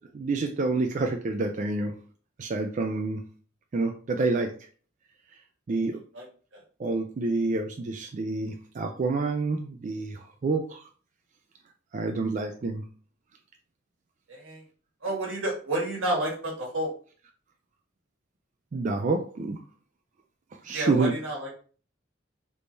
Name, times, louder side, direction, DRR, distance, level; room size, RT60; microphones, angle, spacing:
voice 1, 0.1-1.9 2.4-3.2 3.7-4.5 5.7-6.0 6.8-10.8 11.9-12.8 18.7-19.6 20.6-21.1, right 3 dB, 40° right, 4 dB, 0.3 m, -28 dB
voice 2, 14.3-14.6 15.0-16.9 20.7-21.5, right 1 dB, 80° right, -2 dB, 1.5 m, -30 dB
3.5 x 3.1 x 2.6 m, 0.41 s
head